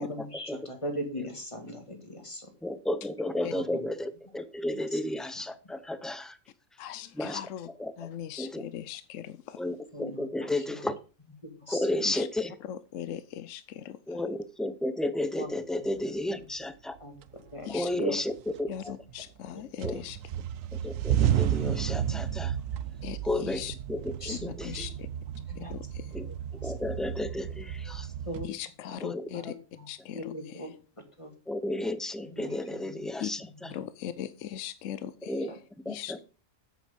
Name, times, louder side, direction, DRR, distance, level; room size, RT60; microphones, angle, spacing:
voice 1, 0.0-2.5 3.5-3.8 4.9-5.0 9.9-10.2 10.8-10.9 11.4-11.9 15.4-15.5 17.0-18.2 19.5-19.6 24.2-24.9 25.5-25.7 26.3-26.4 26.6-26.7 28.3-28.5 28.9-29.0 29.3-30.7 31.2-31.3 32.3-33.1 33.4-33.5 35.5-35.6, equal, 25° left, 4 dB, 2.1 m, -39 dB
voice 2, 2.6-6.4 7.2-7.4 7.8-7.9 8.4-8.6 9.6-11.0 11.7-12.5 14.1-17.0 17.7-19.0 19.8-20.0 20.7-22.6 23.2-24.9 26.1-26.3 26.5-28.1 29.0-29.3 31.5-33.7 35.3-35.5 35.8-36.2, left 1 dB, ahead, 12 dB, 0.4 m, -33 dB
voice 3, 6.8-7.7 8.0-9.6 12.0-12.3 12.6-14.2 17.6-18.2 18.7-20.2 23.0-23.7 24.2-24.4 24.6-25.1 25.5-26.1 28.4-29.5 29.9-30.7 33.2-33.3 33.7-35.5 35.9-36.2, left 10 dB, 75° left, 14 dB, 1.0 m, -39 dB
sound 1, 16.6-16.7 17.2-17.9 18.3-19.5 19.8-28.5, right 10 dB, 85° right, 1.0 m, -32 dB
8.2 x 8.2 x 5.1 m, 0.35 s
omnidirectional pair, 1.3 m